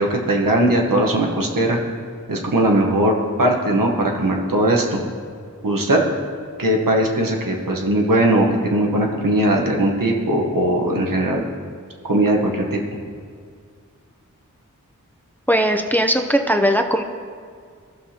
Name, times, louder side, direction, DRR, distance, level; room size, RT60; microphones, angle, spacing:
voice 1, 0.0-1.8 2.3-5.0 5.6-6.0 6.6-11.4 12.1-12.8, right 1 dB, 85° right, 0 dB, 1.1 m, -19 dB
voice 2, 15.5-17.0, equal, 5° left, 5 dB, 0.5 m, -18 dB
15.0 x 5.8 x 2.8 m, 2.1 s
wide cardioid pair, 45°, 33 cm